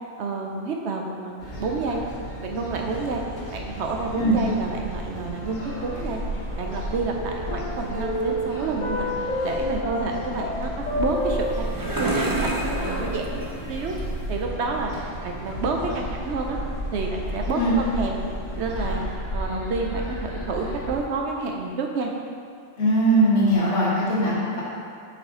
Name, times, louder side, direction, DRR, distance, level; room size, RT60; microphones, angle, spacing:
voice 1, 0.2-2.0 2.4-3.2 3.5-6.2 6.6-9.1 9.4-13.9 14.3-14.9 15.2-16.6 16.9-18.2 18.6-19.0 19.3-22.1, right 4 dB, 65° right, 1 dB, 0.8 m, -29 dB
sound 1, 1.4-21.0, equal, 80° left, 1.5 m, -33 dB
sound 2, 5.6-6.7 7.0-11.5, left 1 dB, 45° left, 0.8 m, -30 dB
sound 3, 10.9-14.5, right 2 dB, 30° right, 0.3 m, -30 dB
voice 2, 22.8-24.6, right 1 dB, 65° left, -8 dB, 1.8 m, -20 dB
5.6 x 4.7 x 3.7 m, 2.4 s
omnidirectional pair, 1.3 m